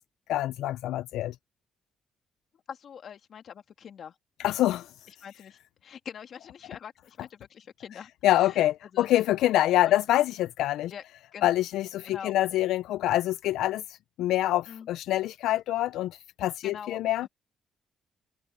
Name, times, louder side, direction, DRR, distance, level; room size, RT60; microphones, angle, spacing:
voice 1, 0.3-1.4 4.4-5.1 8.2-10.9 11.4-17.3, left 14 dB, 85° left, 0.3 m, -26 dB
voice 2, 2.7-4.1 5.1-8.6 8.9-9.1 9.8-9.9 10.9-11.0 11.3-11.5 12.0-12.5 14.7-14.9 16.6-17.3, left 8 dB, 60° left, 2.7 m, -44 dB
cardioid pair, 90°, 0 cm